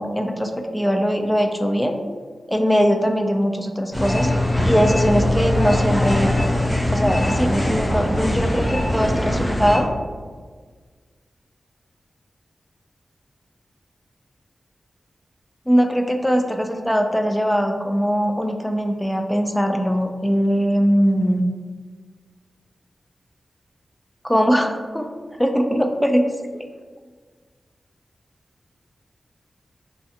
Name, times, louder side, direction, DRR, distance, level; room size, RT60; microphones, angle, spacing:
voice 1, 0.0-2.0 2.5-4.3 4.6-6.3 6.9-9.9 15.7-21.4 24.2-26.6, equal, 10° left, 4 dB, 0.3 m, -21 dB
sound 1, 3.9-9.8, left 1 dB, 30° left, 0.7 m, -21 dB
2.5 x 2.3 x 2.7 m, 1.5 s
cardioid pair, 45°, 0 cm